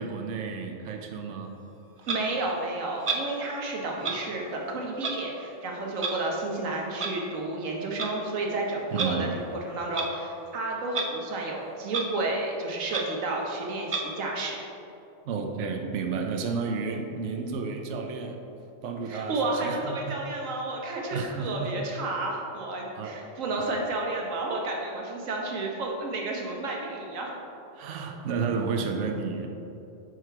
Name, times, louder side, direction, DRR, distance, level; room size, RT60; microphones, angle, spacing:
voice 1, 0.0-1.5 8.9-9.3 15.2-18.4 18.8-20.2 21.1-21.7 23.0-23.2 23.6-23.7 27.7-29.5, right 5 dB, 70° right, 3 dB, 1.0 m, -32 dB
Clock, 2.0-2.2 3.0-3.3 4.0-4.2 5.0-5.2 6.0-6.1 7.0-7.1 7.8-8.1 8.9-9.1 9.9-10.1 10.9-11.1 11.4-11.5 11.9-12.1 12.5-12.6 12.9-13.0 13.9-14.0, right 4 dB, 45° right, 0.4 m, -30 dB
voice 2, 2.1-9.3 9.7-14.6 19.1-27.3, right 2 dB, 90° right, -1 dB, 1.4 m, -31 dB
6.3 x 4.8 x 4.5 m, 2.8 s
omnidirectional pair, 1.3 m